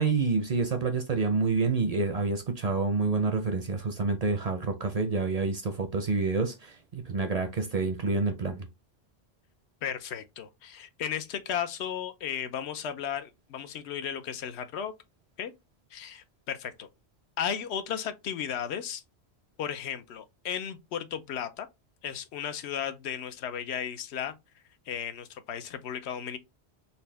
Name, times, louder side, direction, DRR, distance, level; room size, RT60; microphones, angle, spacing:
voice 1, 0.0-8.7, right 4 dB, 50° right, 0.5 m, -28 dB
voice 2, 9.8-14.9 15.4-15.5 15.9-16.9 17.4-19.0 19.6-21.7 22.0-24.3 24.9-26.4, left 8 dB, 85° left, 0.9 m, -35 dB
4.1 x 2.2 x 3.2 m
omnidirectional pair, 1.1 m